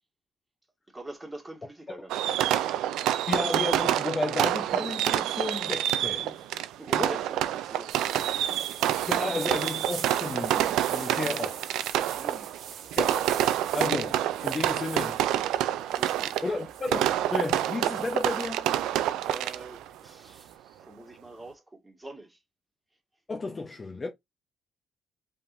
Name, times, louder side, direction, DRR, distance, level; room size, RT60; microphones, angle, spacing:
voice 1, 0.9-2.6 6.8-8.9 11.0-11.5 12.2-12.5 15.8-16.4 19.0-22.4, right 2 dB, 10° right, 2.0 m, -45 dB
Fireworks, 2.1-19.9, right 12 dB, 85° right, 0.4 m, -27 dB
voice 2, 3.3-6.5 6.9-7.2 9.1-11.6 13.0-13.2 13.7-15.2 16.4-18.7 23.3-24.1, left 3 dB, 25° left, 0.9 m, -33 dB
sound 1, 7.9-20.5, right 8 dB, 70° right, 1.2 m, -44 dB
5.4 x 3.6 x 2.6 m
cardioid pair, 100°, 0 cm